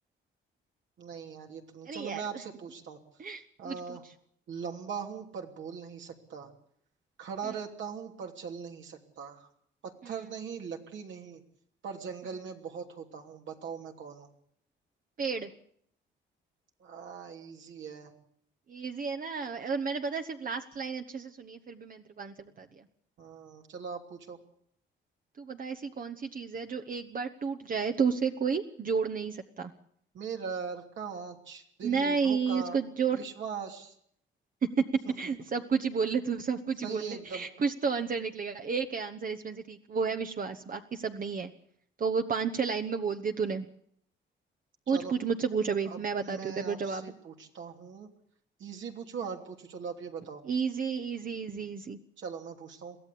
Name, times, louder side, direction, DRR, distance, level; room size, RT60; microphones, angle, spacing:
voice 1, 1.0-3.0 3.6-4.0 4.5-6.5 7.2-9.5 9.8-11.4 11.8-14.3 16.8-18.1 23.2-24.4 30.1-32.8 33.1-33.9 35.1-35.2 36.8-37.5 44.9-45.1 45.9-48.1 48.6-50.4 52.2-53.0, right 6 dB, 70° right, 3 dB, 3.0 m, -40 dB
voice 2, 1.8-2.2 3.2-4.0 7.4-7.5 10.0-10.2 15.2-15.5 18.7-22.9 25.4-29.7 31.8-33.2 35.2-41.5 42.0-43.7 44.9-47.1 50.4-52.0, right 5 dB, 45° right, 6 dB, 1.2 m, -32 dB
23.0 x 15.5 x 8.5 m, 0.68 s
cardioid pair, 90°, 20 cm